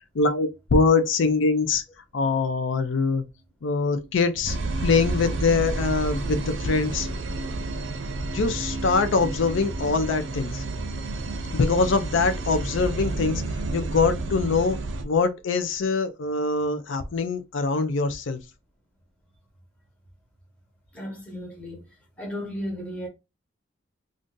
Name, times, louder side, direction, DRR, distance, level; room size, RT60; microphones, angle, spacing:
voice 1, 0.1-1.8 2.1-3.2 3.6-7.1 8.3-10.6 11.5-14.8 15.0-18.4, left 4 dB, 75° left, 0.4 m, -23 dB
sound 1, 4.5-15.0, right 2 dB, 75° right, 0.5 m, -30 dB
voice 2, 20.9-21.8 22.2-23.1, equal, 5° left, 0.9 m, -34 dB
2.6 x 2.4 x 3.6 m
head